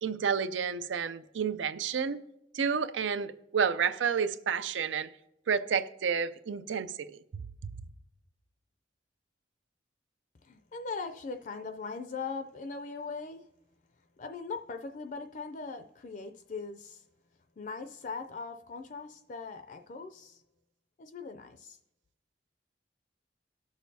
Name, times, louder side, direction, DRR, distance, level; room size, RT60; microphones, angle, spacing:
voice 1, 0.0-2.2 2.5-5.1 5.5-7.4, right 6 dB, 90° right, 0.5 m, -30 dB
voice 2, 10.4-13.4 14.2-17.0 17.6-20.4 21.0-21.8, left 4 dB, 45° left, 0.4 m, -40 dB
19.0 x 6.3 x 2.7 m
head